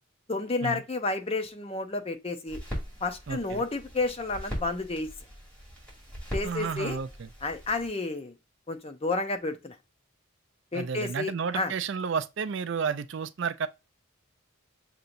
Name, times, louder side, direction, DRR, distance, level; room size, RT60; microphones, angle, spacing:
voice 1, 0.3-2.6 3.0-5.1 6.3-7.0 7.4-8.3 8.7-9.8 10.7-11.7, left 3 dB, 30° left, 0.6 m, -31 dB
sound 1, 2.5-7.9, equal, 5° left, 2.3 m, -40 dB
voice 2, 3.3-3.6 6.4-7.3 10.7-13.7, right 6 dB, 60° right, 0.4 m, -31 dB
6.6 x 2.9 x 2.5 m
head